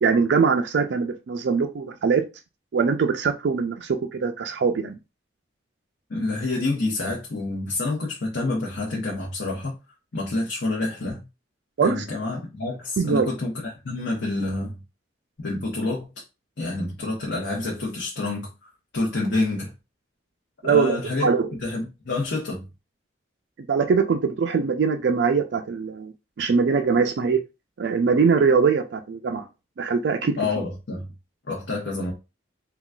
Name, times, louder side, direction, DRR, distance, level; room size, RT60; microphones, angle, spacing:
voice 1, 0.0-2.2 2.7-5.0 11.8-12.0 13.0-13.3 20.6-21.5 23.7-27.4 27.8-29.5 29.8-30.4, right 5 dB, 65° right, 0.3 m, -22 dB
voice 2, 6.1-9.7 10.1-11.2 11.8-13.5 13.8-14.7 15.4-16.1 16.6-18.5 18.9-19.7 20.6-21.3 21.6-22.7 30.4-31.1 31.5-32.1, left 2 dB, 70° left, 0.8 m, -27 dB
3.7 x 2.3 x 2.3 m
head